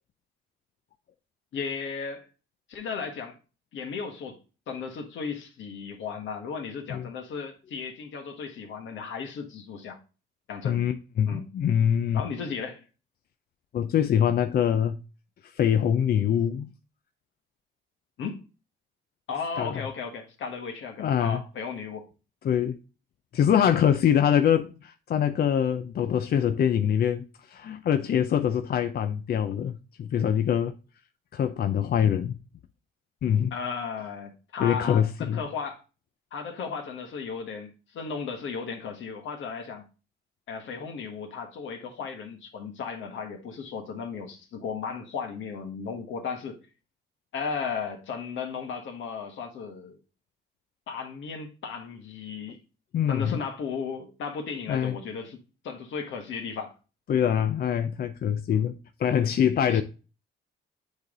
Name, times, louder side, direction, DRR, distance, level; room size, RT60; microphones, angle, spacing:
voice 1, 1.5-2.3 2.7-3.4 3.7-4.4 4.7-10.0 10.5-10.8 11.3-11.5 12.1-12.8 18.2-18.4 19.3-22.1 33.5-35.8 36.3-39.8 40.5-46.6 47.3-50.0 50.9-52.6 53.1-56.7 57.3-57.4 58.5-58.6 59.7-59.8, left 5 dB, 75° left, 1.5 m, -35 dB
voice 2, 10.6-12.2 13.7-15.0 15.4-16.7 19.6-19.8 21.0-21.4 22.4-22.8 23.3-30.7 31.3-32.4 33.2-33.5 34.6-35.4 52.9-53.4 54.7-55.0 57.1-59.8, left 9 dB, 50° left, 0.5 m, -24 dB
8.1 x 3.3 x 3.8 m
cardioid pair, 90°, 20 cm